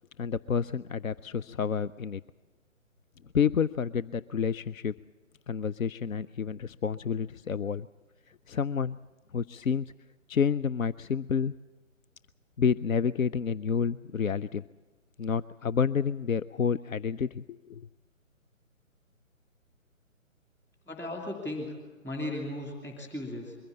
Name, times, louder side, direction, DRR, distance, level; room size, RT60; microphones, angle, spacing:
voice 1, 0.2-2.2 3.3-4.9 5.5-7.9 8.3-9.0 9.3-9.9 10.3-11.5 12.6-14.6 15.2-17.9, left 6 dB, 75° left, 15 dB, 0.6 m, -29 dB
voice 2, 20.9-21.8 22.0-23.6, left 1 dB, 5° left, 0 dB, 2.8 m, -36 dB
22.5 x 15.5 x 8.5 m, 1.3 s
figure-of-eight pair, 140°, 41 cm